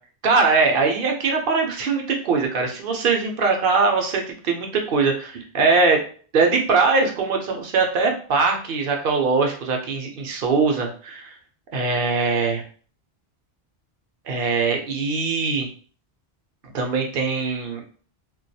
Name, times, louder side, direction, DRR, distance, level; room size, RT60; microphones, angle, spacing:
voice 1, 0.2-6.0 6.3-11.3 11.7-12.6 14.3-15.7 16.7-17.8, right 4 dB, 65° right, 2 dB, 0.7 m, -21 dB
2.3 x 2.2 x 2.6 m, 0.43 s
omnidirectional pair, 1.1 m